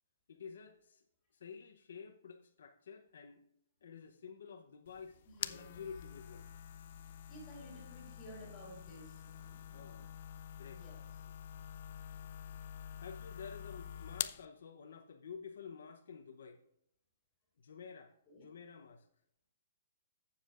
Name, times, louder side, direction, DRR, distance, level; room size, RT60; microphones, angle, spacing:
voice 1, 0.3-1.0 1.3-3.4 3.8-5.2 5.5-6.5 9.7-10.1 10.5-10.8 13.0-16.6 17.6-19.1, left 6 dB, 65° left, 5 dB, 0.7 m, -51 dB
sound 1, 4.9-14.5, left 10 dB, 40° left, 0.3 m, -46 dB
voice 2, 5.2-5.8 7.1-10.1 10.7-11.0 18.3-18.5, equal, 10° left, -3 dB, 3.4 m, -55 dB
14.0 x 7.2 x 2.4 m, 0.73 s
hypercardioid pair, 180°, 0 cm